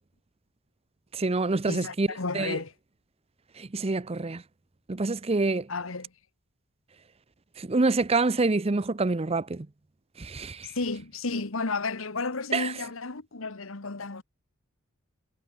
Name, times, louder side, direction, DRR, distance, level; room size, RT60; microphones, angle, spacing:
voice 1, 1.1-2.1 2.3-2.6 3.6-4.4 4.9-5.7 7.6-9.7 10.2-10.7 12.5-12.7, right 3 dB, 30° right, 0.7 m, -26 dB
voice 2, 1.7-2.7 5.7-6.1 10.6-14.2, left 3 dB, 75° left, 1.4 m, -32 dB
head